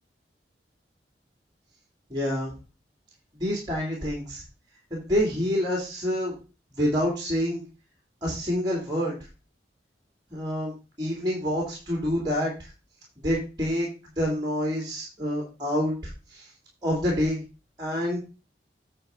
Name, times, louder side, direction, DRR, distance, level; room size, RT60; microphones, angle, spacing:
voice 1, 2.1-2.5 3.3-4.4 4.9-6.3 6.8-7.6 8.2-9.2 10.3-10.7 11.0-12.7 13.2-13.9 14.2-15.9 16.3-16.5 16.8-17.4 17.8-18.2, equal, 25° right, -1 dB, 2.7 m, -27 dB
9.3 x 3.7 x 7.0 m, 0.32 s
head